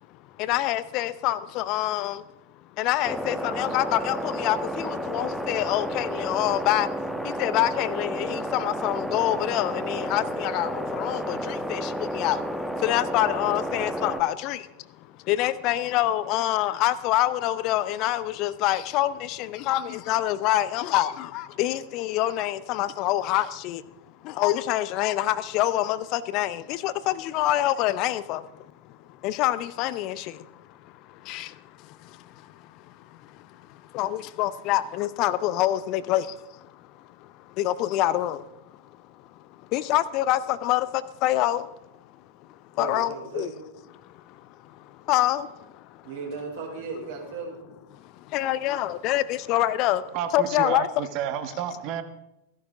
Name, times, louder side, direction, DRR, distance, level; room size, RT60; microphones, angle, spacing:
voice 1, 0.4-2.2 2.8-6.9 7.2-12.4 12.8-14.7 15.2-23.8 24.2-28.7 29.2-38.4 39.6-41.7 42.5-43.5 44.0-46.0 48.0-51.1, left 14 dB, 40° left, 0.6 m, -26 dB
sound 1, 3.0-14.2, equal, ahead, 1.2 m, -31 dB
voice 2, 42.8-43.5 46.0-47.6, right 4 dB, 55° right, 5.4 m, -36 dB
voice 3, 50.1-52.0, right 9 dB, 40° right, 1.5 m, -30 dB
16.0 x 11.5 x 5.0 m
figure-of-eight pair, 90°, 0 cm